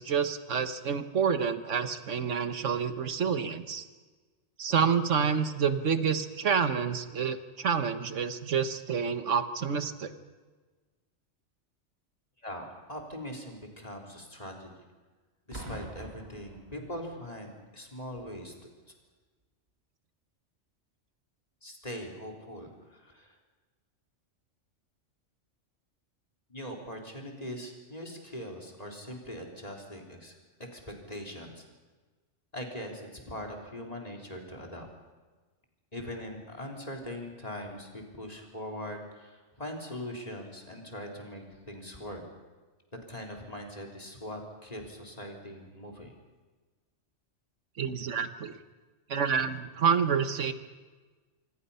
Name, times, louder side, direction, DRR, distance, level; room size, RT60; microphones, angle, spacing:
voice 1, 0.0-3.8 4.6-10.1 47.8-48.6 49.1-50.5, right 6 dB, 80° right, 10 dB, 1.5 m, -28 dB
voice 2, 12.4-14.7 15.5-18.7 21.6-23.4 26.5-31.6 32.5-34.9 35.9-42.2 43.1-46.2, equal, 30° left, 1 dB, 3.7 m, -41 dB
Boom, 15.5-17.3 18.2-18.4, right 1 dB, 55° right, 3.0 m, -45 dB
26.0 x 25.5 x 5.6 m, 1.3 s
omnidirectional pair, 1.3 m